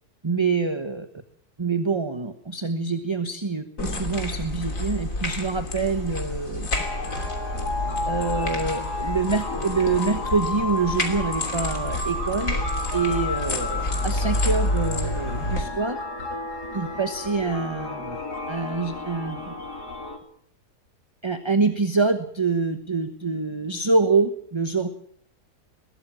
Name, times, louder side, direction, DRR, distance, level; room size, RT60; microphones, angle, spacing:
voice 1, 0.2-1.1 1.6-6.7 8.1-12.6 12.9-16.0 16.7-18.2 18.5-19.5 21.2-24.9, right 4 dB, 20° right, 8 dB, 1.2 m, -25 dB
sound 1, 3.8-15.6, left 1 dB, 55° left, 3.4 m, -29 dB
sound 2, 6.7-20.2, left 2 dB, 75° left, 3.5 m, -32 dB
21.5 x 17.0 x 7.6 m, 0.65 s
omnidirectional pair, 1.7 m